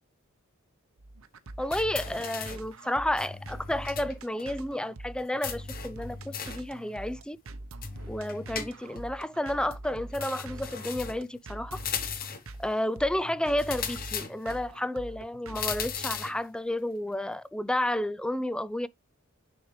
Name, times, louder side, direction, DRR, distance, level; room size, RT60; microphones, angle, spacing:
sound 1, 1.0-16.4, right 2 dB, 70° right, 0.9 m, -44 dB
voice 1, 1.6-7.4 8.1-11.8 12.6-18.9, left 1 dB, 5° left, 0.4 m, -31 dB
sound 2, 1.7-2.7 3.2-4.1 4.4-4.5 5.4-6.7 7.8-9.1 10.1-11.3 11.7-12.5 13.6-14.6 15.5-16.4, left 7 dB, 45° left, 1.1 m, -37 dB
9.8 x 4.7 x 3.2 m
head